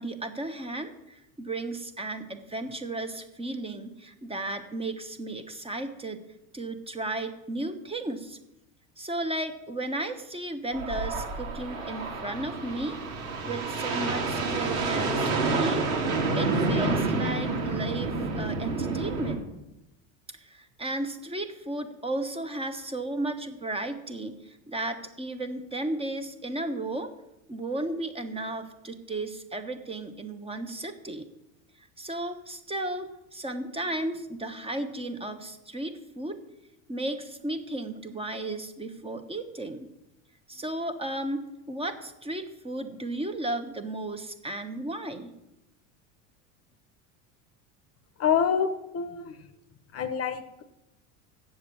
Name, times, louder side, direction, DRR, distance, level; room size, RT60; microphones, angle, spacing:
voice 1, 0.0-6.2 6.5-8.4 9.0-13.0 13.4-15.8 16.3-19.5 20.3-27.1 27.5-31.2 32.0-36.4 36.9-39.9 40.5-45.3, right 2 dB, 15° right, 8 dB, 1.0 m, -34 dB
sound 1, 10.7-19.4, right 3 dB, 90° right, 2.7 m, -29 dB
voice 2, 48.2-48.7 48.9-49.4 49.9-50.6, left 7 dB, 35° left, 10 dB, 0.9 m, -26 dB
7.9 x 7.3 x 8.5 m, 0.90 s
supercardioid pair, 110°, 40 cm